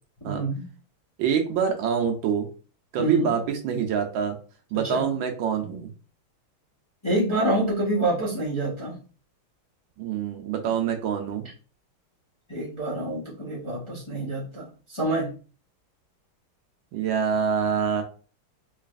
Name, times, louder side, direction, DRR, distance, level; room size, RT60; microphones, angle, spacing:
voice 1, 0.2-0.6 3.0-3.3 4.8-5.1 7.0-9.0 12.5-15.3, right 1 dB, 20° left, -8 dB, 0.9 m, -27 dB
voice 2, 1.2-2.5 2.9-4.4 4.7-5.9 10.0-11.4 16.9-18.0, right 7 dB, 75° right, 4 dB, 1.3 m, -25 dB
3.9 x 3.2 x 2.4 m, 0.37 s
omnidirectional pair, 2.3 m